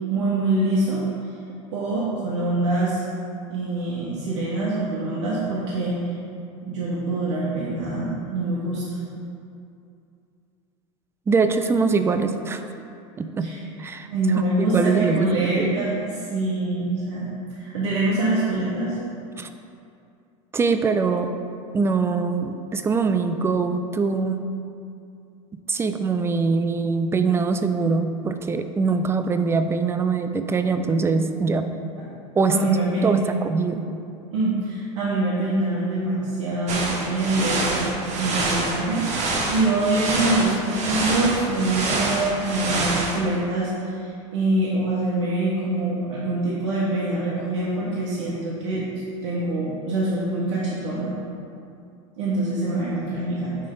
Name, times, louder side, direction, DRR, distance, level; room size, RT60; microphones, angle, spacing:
voice 1, 0.1-1.0 1.7-3.0 3.5-6.0 6.6-9.0 13.4-13.6 14.0-15.9 16.3-17.3 17.6-18.9 32.5-33.2 34.3-37.9 38.2-48.9 49.2-51.1 52.2-53.6, right 2 dB, 75° right, -7 dB, 1.3 m, -24 dB
voice 2, 11.3-12.6 13.2-14.1 14.6-15.9 19.4-19.5 20.5-21.3 21.7-24.5 25.7-31.7 32.4-32.6 33.0-33.8, right 4 dB, 15° right, 8 dB, 0.3 m, -23 dB
sound 1, 36.7-43.2, right 2 dB, 45° right, 1.2 m, -26 dB
9.2 x 3.4 x 3.8 m, 2.5 s
supercardioid pair, 115°, 17 cm